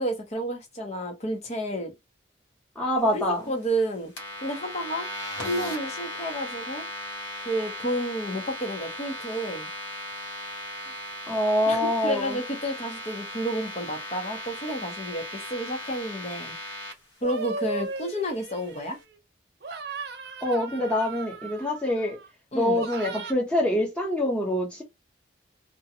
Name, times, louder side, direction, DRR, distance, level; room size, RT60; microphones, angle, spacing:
voice 1, 0.0-1.9 3.1-4.1 4.4-5.1 5.4-6.8 7.4-9.7 11.7-16.5 17.2-19.0 22.5-22.8, right 1 dB, 35° left, 0.7 m, -31 dB
voice 2, 2.8-3.5 11.3-12.4 20.4-22.2 22.5-24.8, left 1 dB, 5° left, 0.8 m, -25 dB
sound 1, 4.2-16.9, left 1 dB, 80° left, 0.9 m, -37 dB
sound 2, 17.2-19.2 19.6-22.3 22.7-23.3, right 3 dB, 55° right, 0.4 m, -37 dB
2.5 x 2.2 x 2.7 m
head